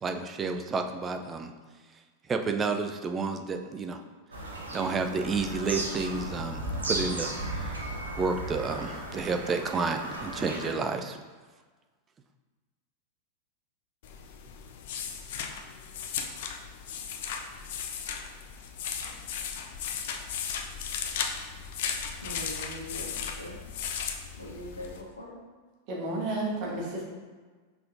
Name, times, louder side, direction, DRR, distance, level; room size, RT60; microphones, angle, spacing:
voice 1, 0.0-1.5 2.3-4.0 4.7-7.8 8.2-11.2, right 4 dB, 20° right, 5 dB, 0.4 m, -30 dB
Bird vocalization bird call bird song, 4.3-10.7, right 1 dB, 75° right, 0.6 m, -35 dB
sound 1, 14.0-25.0, left 7 dB, 55° left, 0.4 m, -36 dB
voice 2, 22.2-23.6 24.4-25.4, equal, 85° left, -4 dB, 1.0 m, -41 dB
voice 3, 25.9-27.0, right 2 dB, 40° right, -3 dB, 1.2 m, -31 dB
5.5 x 3.6 x 2.6 m, 1.4 s
figure-of-eight pair, 90°, 0 cm